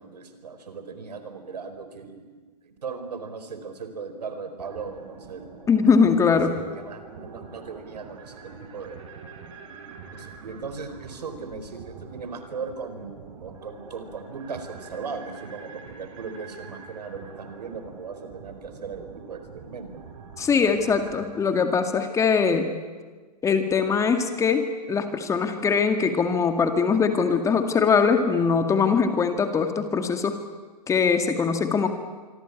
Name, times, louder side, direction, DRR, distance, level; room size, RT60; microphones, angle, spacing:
voice 1, 0.0-2.2 2.6-5.4 6.0-9.1 10.1-20.0, right 5 dB, 70° right, 9 dB, 4.6 m, -38 dB
sound 1, 4.6-21.3, right 5 dB, 45° right, 5.7 m, -45 dB
voice 2, 5.7-6.5 20.4-22.7 23.4-30.4 30.9-31.9, left 5 dB, 15° left, 7 dB, 2.1 m, -22 dB
26.0 x 24.0 x 8.7 m, 1.4 s
hypercardioid pair, 125°, 21 cm